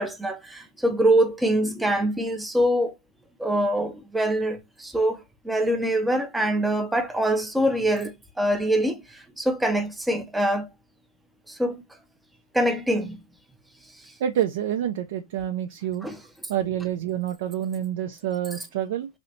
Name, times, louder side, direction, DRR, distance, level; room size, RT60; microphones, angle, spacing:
voice 1, 0.0-2.9 3.4-8.1 8.4-10.7 11.5-11.8 12.5-13.2 16.0-16.2, right 1 dB, 5° right, 0.6 m, -24 dB
voice 2, 14.2-16.1 16.5-19.1, right 10 dB, 60° right, 0.5 m, -27 dB
3.2 x 2.9 x 2.7 m
hypercardioid pair, 135°, 0 cm